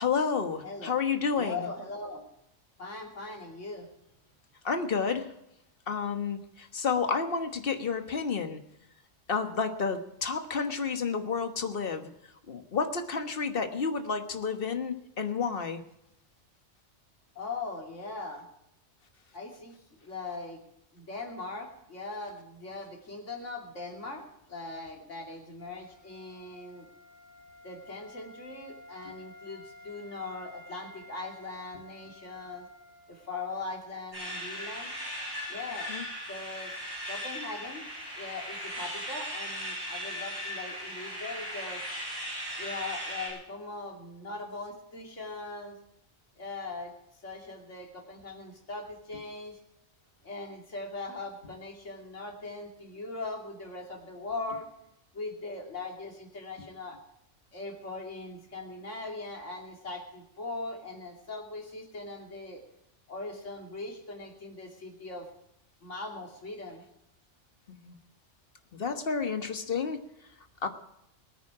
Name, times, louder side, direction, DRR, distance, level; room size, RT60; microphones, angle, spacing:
voice 1, 0.0-1.7 4.6-5.3 5.9-8.6 9.3-12.1 12.5-15.8 35.9-36.0 67.8-68.0 68.7-70.0 70.6-70.7, left 5 dB, 50° left, 7 dB, 1.5 m, -30 dB
voice 2, 0.6-0.9 1.3-2.2 2.8-3.9 17.3-18.4 19.3-20.6 20.9-26.9 27.6-32.7 33.1-34.9 35.5-35.9 36.3-36.7 37.1-37.8 38.2-41.8 42.6-45.8 46.4-46.9 47.2-49.6 50.2-54.7 55.1-57.0 57.5-62.6 63.1-65.3 65.8-66.8, left 3 dB, 80° left, 1 dB, 3.1 m, -40 dB
Wind instrument woodwind instrument, 25.8-33.6, left 1 dB, 75° right, 6.7 m, -52 dB
sound 1, 34.1-43.3, equal, 20° right, 6.2 m, -38 dB
21.5 x 9.4 x 4.9 m, 0.80 s
omnidirectional pair, 1.3 m